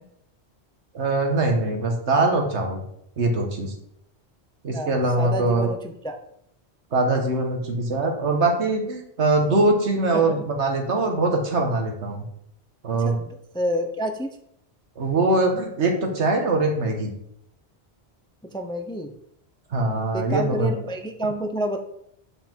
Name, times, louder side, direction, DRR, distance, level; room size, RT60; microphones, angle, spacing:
voice 1, 0.9-2.8 3.2-3.7 4.6-5.7 6.9-12.2 12.8-13.2 15.0-17.1 19.7-20.8, right 2 dB, 80° right, 3 dB, 1.6 m, -22 dB
voice 2, 5.2-6.2 10.1-10.3 13.0-14.4 18.5-19.1 20.1-21.8, right 1 dB, 5° left, 6 dB, 0.4 m, -28 dB
7.7 x 5.1 x 4.5 m, 0.73 s
omnidirectional pair, 1.2 m